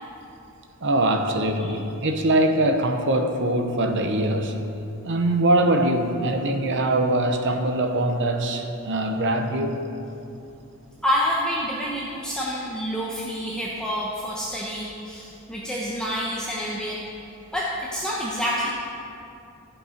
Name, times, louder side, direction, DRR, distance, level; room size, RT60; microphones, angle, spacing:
voice 1, 0.8-4.5 5.0-9.8, right 1 dB, 55° right, 5 dB, 0.8 m, -22 dB
voice 2, 11.0-17.1 17.5-18.7, equal, 5° left, -5 dB, 0.9 m, -28 dB
14.5 x 5.5 x 5.1 m, 2.7 s
head